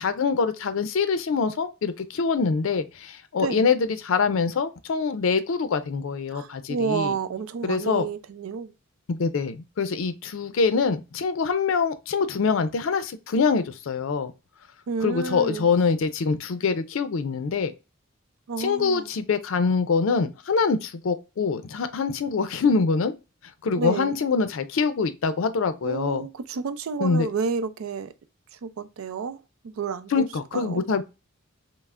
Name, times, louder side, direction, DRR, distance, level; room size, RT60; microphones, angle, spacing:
voice 1, 0.0-7.1 7.6-8.1 9.1-14.3 15.0-17.7 18.6-23.1 23.6-26.3 27.0-27.3 30.1-31.0, left 5 dB, 75° left, 0.4 m, -24 dB
voice 2, 6.3-8.7 14.9-15.7 18.5-19.1 23.8-24.1 25.8-28.1 28.5-30.2 30.5-30.8, right 5 dB, 85° right, 0.4 m, -30 dB
5.4 x 2.0 x 2.3 m
head